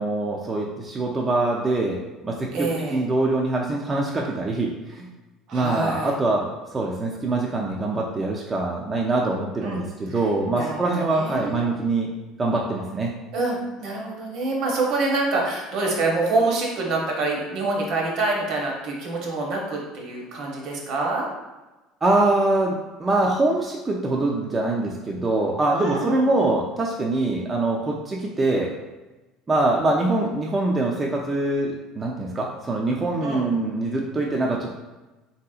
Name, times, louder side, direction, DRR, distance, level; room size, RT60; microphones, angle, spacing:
voice 1, 0.0-2.0 2.2-5.1 5.5-12.1 12.4-13.2 22.0-28.7 29.5-34.8, right 2 dB, 25° right, -1 dB, 0.4 m, -24 dB
voice 2, 2.5-3.0 5.5-6.1 9.6-9.8 10.1-10.2 10.5-11.7 13.3-21.3 25.8-26.3 33.2-33.5, right 2 dB, 60° right, -1 dB, 0.8 m, -26 dB
3.2 x 2.8 x 2.3 m, 1.1 s
supercardioid pair, 100°, 0 cm